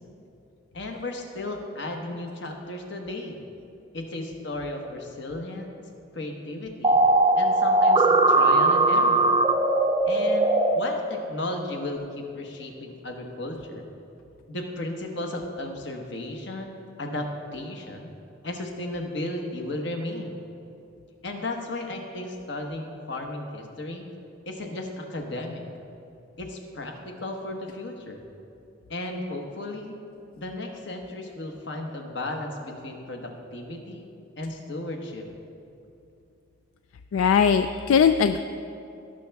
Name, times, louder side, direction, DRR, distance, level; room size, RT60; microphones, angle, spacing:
voice 1, 0.7-3.4 3.9-5.8 6.1-7.0 7.4-9.3 10.1-13.9 14.5-18.1 18.4-20.4 21.2-24.1 24.5-25.6 26.4-28.2 28.9-30.0 30.3-34.1 34.4-35.3, left 1 dB, 60° left, 2 dB, 1.2 m, -34 dB
sound 1, 6.8-10.7, right 2 dB, 25° right, 0.5 m, -19 dB
voice 2, 37.1-38.4, left 7 dB, 80° left, 9 dB, 0.3 m, -20 dB
18.0 x 6.5 x 3.5 m, 2.7 s
head